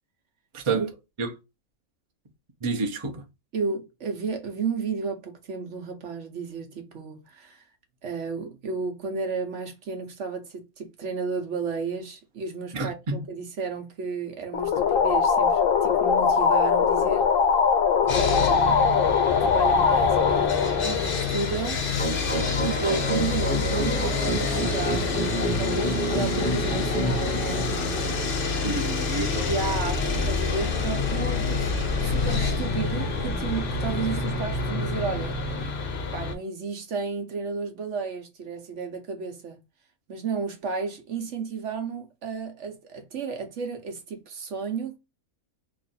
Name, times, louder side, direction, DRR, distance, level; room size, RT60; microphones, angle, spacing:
voice 1, 2.6-3.2 12.7-13.2 28.6-29.6, right 3 dB, 30° right, 0.6 m, -29 dB
voice 2, 3.5-7.6 8.0-17.3 18.0-18.8 19.4-21.8 22.6-28.4 29.5-31.7 32.0-35.3 36.1-39.6 40.1-45.0, right 5 dB, 60° right, 1.1 m, -33 dB
sound 1, 14.5-21.9, left 6 dB, 70° left, 1.0 m, -22 dB
Sawing, 18.1-36.3, left 5 dB, 50° left, 0.8 m, -29 dB
sound 2, 22.0-35.7, equal, 10° left, 0.5 m, -30 dB
3.1 x 2.5 x 3.9 m
omnidirectional pair, 1.5 m